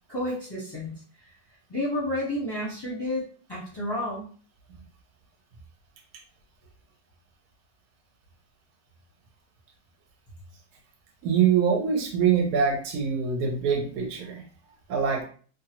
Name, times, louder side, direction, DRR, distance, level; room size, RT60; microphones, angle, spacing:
voice 1, 0.1-1.0 1.7-4.3, left 1 dB, 20° left, -7 dB, 0.8 m, -31 dB
voice 2, 11.2-14.4 14.9-15.2, right 7 dB, 60° right, 1 dB, 1.1 m, -24 dB
3.0 x 2.5 x 2.9 m, 0.43 s
omnidirectional pair, 2.0 m